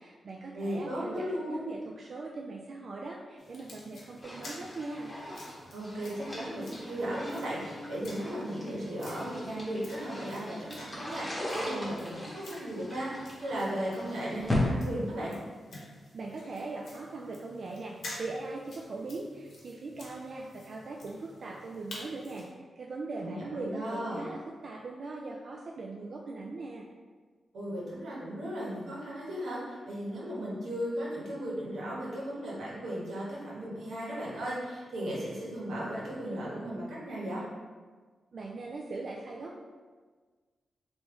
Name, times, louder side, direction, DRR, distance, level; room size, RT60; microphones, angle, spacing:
voice 1, 0.0-5.1 16.1-22.5 22.8-26.9 38.3-39.6, right 3 dB, 55° right, -2 dB, 0.3 m, -40 dB
voice 2, 0.5-1.6 5.7-15.4 23.2-24.2 27.5-37.4, equal, 90° right, -6 dB, 1.1 m, -36 dB
sound 1, 3.4-22.5, left 1 dB, 75° left, 0.9 m, -50 dB
sound 2, 4.2-14.7, left 1 dB, 10° left, 1.0 m, -39 dB
sound 3, 6.3-12.7, left 2 dB, 10° right, 1.4 m, -52 dB
3.4 x 2.5 x 3.5 m, 1.5 s
wide cardioid pair, 105°, 0 cm